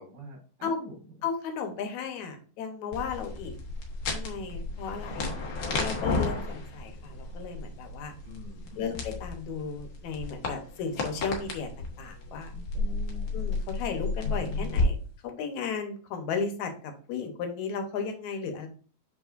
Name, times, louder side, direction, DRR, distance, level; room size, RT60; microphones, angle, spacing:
voice 1, 0.0-1.1 8.2-8.9 12.7-13.4, left 1 dB, 65° right, -1 dB, 4.2 m, -46 dB
voice 2, 1.2-3.5 4.1-5.3 5.7-8.1 8.8-12.5 13.3-15.0 15.2-18.7, left 5 dB, 70° left, 5 dB, 2.2 m, -34 dB
sound 1, 2.9-14.8, left 3 dB, 55° left, 1.3 m, -33 dB
7.0 x 5.3 x 2.5 m, 0.40 s
omnidirectional pair, 3.6 m